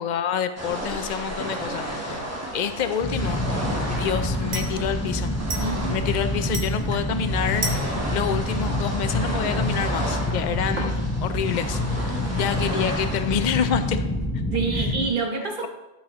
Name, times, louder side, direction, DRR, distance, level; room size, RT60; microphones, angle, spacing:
voice 1, 0.0-2.2 2.5-5.3 5.9-10.9 11.2-14.1 14.8-14.9, left 8 dB, 55° left, 10 dB, 0.5 m, -28 dB
sound 1, 0.6-13.9, right 1 dB, 15° right, 1.2 m, -33 dB
sound 2, 1.6-14.4, right 2 dB, 80° right, 1.5 m, -40 dB
sound 3, 3.0-15.1, left 1 dB, 10° left, 0.7 m, -27 dB
voice 2, 5.6-6.1 14.5-15.7, right 4 dB, 45° right, 4 dB, 1.1 m, -27 dB
11.5 x 5.5 x 2.9 m, 1.0 s
omnidirectional pair, 1.2 m